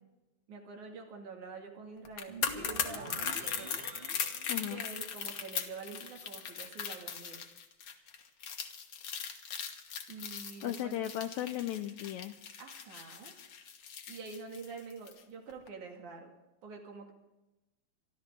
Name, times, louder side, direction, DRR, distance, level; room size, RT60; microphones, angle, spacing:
voice 1, 0.5-3.9 4.5-7.4 10.1-11.0 12.6-13.3 14.1-16.4 16.6-17.1, right 4 dB, 75° right, 2 dB, 3.8 m, -47 dB
sound 1, 2.0-15.2 15.5-15.7, left 7 dB, 55° left, 1.9 m, -39 dB
sound 2, 2.3-5.5, right 3 dB, 55° right, 0.6 m, -46 dB
voice 2, 4.5-4.8 10.6-12.4, left 12 dB, 80° left, 8 dB, 1.8 m, -36 dB
26.5 x 12.0 x 3.7 m, 1.0 s
omnidirectional pair, 3.4 m